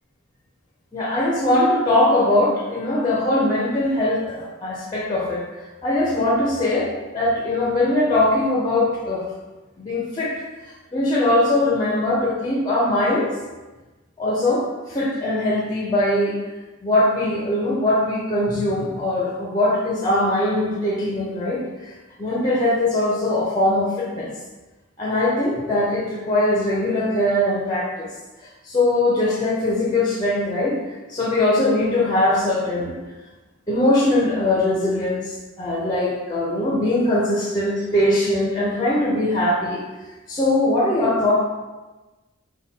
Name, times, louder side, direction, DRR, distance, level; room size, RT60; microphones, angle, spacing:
voice 1, 0.9-5.5 5.8-9.3 9.8-10.4 10.9-13.4 14.2-16.4 16.8-24.3 25.0-28.1 28.6-33.0 33.7-39.8 40.3-41.3, left 1 dB, 20° left, -4 dB, 0.4 m, -21 dB
4.0 x 2.2 x 3.5 m, 1.2 s
head